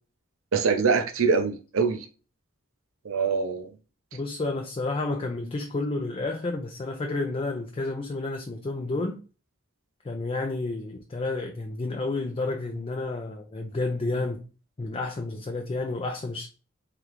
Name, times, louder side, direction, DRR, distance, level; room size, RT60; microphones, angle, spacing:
voice 1, 0.5-2.0 3.0-3.7, right 5 dB, 90° right, 0.6 m, -24 dB
voice 2, 4.1-9.2 10.0-14.4 14.8-16.5, left 2 dB, 30° left, 0.4 m, -30 dB
3.6 x 3.4 x 3.0 m
head